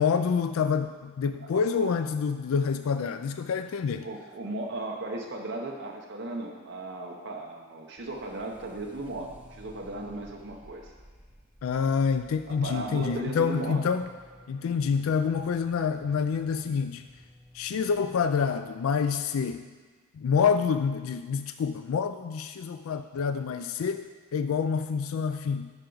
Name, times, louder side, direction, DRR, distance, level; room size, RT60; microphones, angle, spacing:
voice 1, 0.0-4.1 11.6-14.1 14.5-17.0 17.5-19.7 20.1-25.7, left 6 dB, 70° left, 9 dB, 0.3 m, -27 dB
voice 2, 1.4-1.9 4.0-10.9 11.8-12.0 12.5-13.8, right 2 dB, 55° right, 0 dB, 0.7 m, -36 dB
sound 1, 8.0-18.6, equal, 5° right, 0.6 m, -54 dB
13.5 x 5.7 x 3.9 m, 1.5 s
head